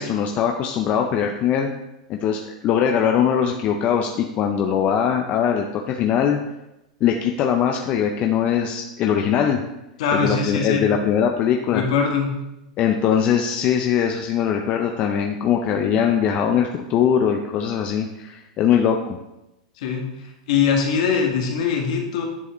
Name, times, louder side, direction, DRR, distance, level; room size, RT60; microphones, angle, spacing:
voice 1, 0.0-1.7 2.1-6.4 7.0-9.6 10.1-11.8 12.8-19.2, left 8 dB, 40° left, 3 dB, 0.6 m, -21 dB
voice 2, 10.0-10.9 11.7-12.3 19.8-20.1 20.5-22.2, left 6 dB, 65° left, 2 dB, 1.5 m, -21 dB
9.7 x 4.8 x 3.1 m, 0.92 s
hypercardioid pair, 110°, 4 cm